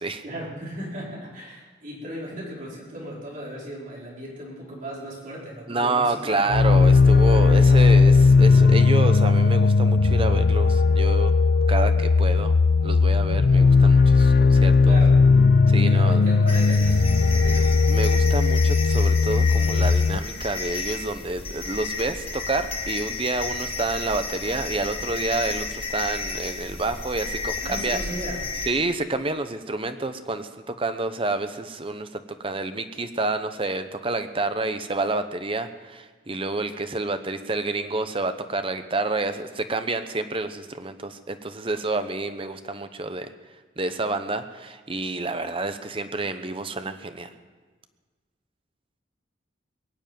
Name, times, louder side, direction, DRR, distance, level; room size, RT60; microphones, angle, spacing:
voice 1, 0.2-6.6 14.8-15.2 15.8-17.7 27.6-28.4, equal, 45° right, -5 dB, 4.5 m, -36 dB
voice 2, 5.7-11.3 11.7-12.5 12.8-15.0 15.7-16.2 17.9-28.0 28.7-43.3 43.8-47.3, right 2 dB, 30° right, 9 dB, 0.8 m, -28 dB
sound 1, 6.5-20.2, left 4 dB, 50° left, 0.4 m, -17 dB
sound 2, 16.5-28.7, left 4 dB, 30° left, 1.5 m, -32 dB
21.5 x 7.3 x 9.2 m, 1.4 s
head